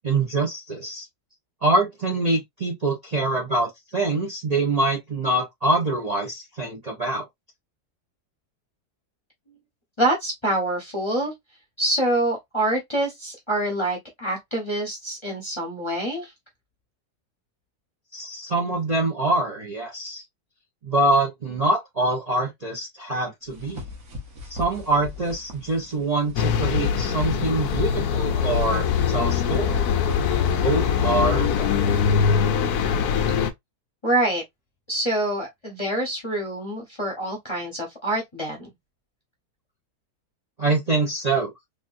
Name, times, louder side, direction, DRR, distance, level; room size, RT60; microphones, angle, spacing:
voice 1, 0.0-1.1 1.6-7.2 18.1-20.2 20.8-23.8 24.5-29.9 30.6-32.0 40.6-41.5, right 2 dB, 30° right, 0.8 m, -25 dB
voice 2, 10.0-11.3 11.8-16.3 34.0-34.4 34.9-38.7, right 1 dB, 20° left, 0.9 m, -26 dB
sound 1, 23.5-32.2, left 5 dB, 65° right, 1.5 m, -39 dB
sound 2, 26.4-33.5, left 7 dB, 75° left, 1.1 m, -22 dB
3.6 x 2.5 x 2.6 m
omnidirectional pair, 1.7 m